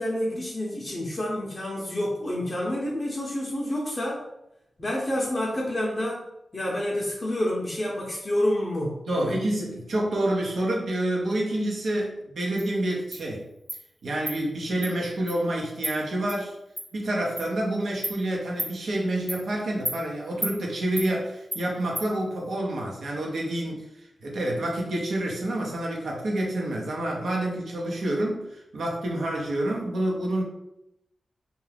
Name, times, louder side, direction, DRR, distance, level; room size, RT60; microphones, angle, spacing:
voice 1, 0.0-4.2 4.8-6.2 6.5-9.4, left 1 dB, 35° left, -4 dB, 0.5 m, -28 dB
voice 2, 9.1-13.5 14.0-16.6 16.9-30.4, right 1 dB, 80° right, -2 dB, 0.7 m, -28 dB
Insect, 12.6-12.7 13.1-13.2 13.7-13.8 14.3-14.4 14.8-14.9 15.3-15.4 15.8-15.9 16.3-16.4 16.8-16.9 17.4-17.5 18.0-18.2 18.6-18.7 19.3-19.4 19.8-20.0 20.4-20.5 21.0-21.1 21.5-21.6 21.9-22.1, right 1 dB, 30° right, 0.7 m, -31 dB
2.4 x 2.2 x 3.2 m, 0.85 s
cardioid pair, 70°, 0 cm